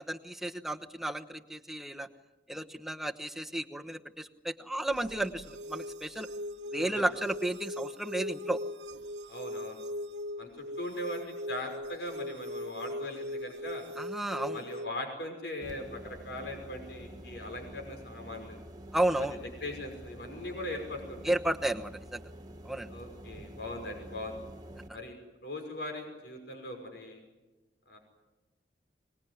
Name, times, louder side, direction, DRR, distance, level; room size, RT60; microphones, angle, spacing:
voice 1, 0.0-2.1 2.5-6.3 6.7-8.6 14.0-14.6 18.9-19.4 21.2-22.2 22.6-22.9, right 1 dB, ahead, 5 dB, 1.1 m, -33 dB
sound 1, 4.9-14.9, left 1 dB, 80° right, 1.1 m, -40 dB
voice 2, 6.7-7.0 9.3-9.8 10.4-10.5 10.8-13.8 14.5-18.6 19.6-21.3 22.9-24.4 24.9-27.2 27.9-28.0, left 1 dB, 75° left, 4 dB, 5.8 m, -40 dB
sound 2, 15.6-24.9, right 1 dB, 25° right, 1.8 m, -48 dB
25.5 x 20.5 x 9.7 m, 1.1 s
head